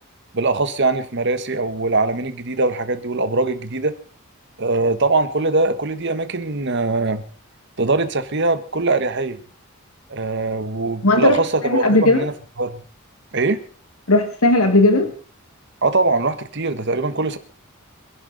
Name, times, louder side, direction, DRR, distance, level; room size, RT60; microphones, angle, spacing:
voice 1, 0.3-3.9 4.6-7.2 7.8-9.4 10.1-12.3 12.6-12.8 13.3-13.6 15.8-17.4, right 3 dB, 55° right, 11 dB, 1.4 m, -21 dB
voice 2, 11.0-11.4 11.6-12.2 14.1-15.1, left 2 dB, 85° left, 7 dB, 1.8 m, -16 dB
25.5 x 11.0 x 4.0 m, 0.42 s
head